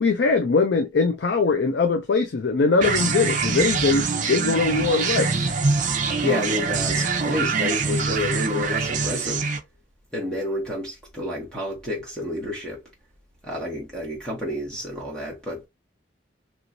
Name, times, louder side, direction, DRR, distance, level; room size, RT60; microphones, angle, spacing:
voice 1, 0.0-5.5, left 4 dB, 70° left, 0.4 m, -21 dB
sound 1, 2.8-9.6, right 4 dB, 45° right, 0.6 m, -24 dB
voice 2, 6.2-9.5 10.1-12.8 13.4-15.7, left 1 dB, 5° left, 1.0 m, -29 dB
3.0 x 3.0 x 2.6 m
head